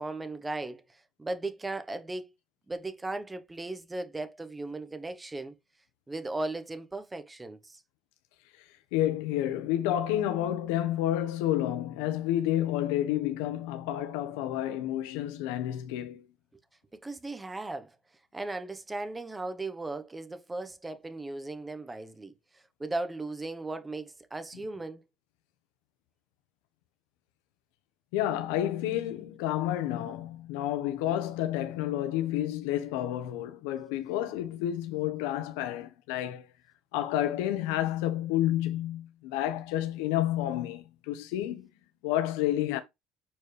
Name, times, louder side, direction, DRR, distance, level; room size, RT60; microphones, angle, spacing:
voice 1, 0.0-2.3 2.7-5.5 6.1-7.8 17.0-17.9 18.3-22.3 22.8-25.0, right 2 dB, 15° right, 1.1 m, -37 dB
voice 2, 8.9-16.3 28.1-36.5 36.9-41.7 42.0-42.8, left 12 dB, 90° left, 1.2 m, -30 dB
7.1 x 4.5 x 3.4 m
cardioid pair, 120°, 0 cm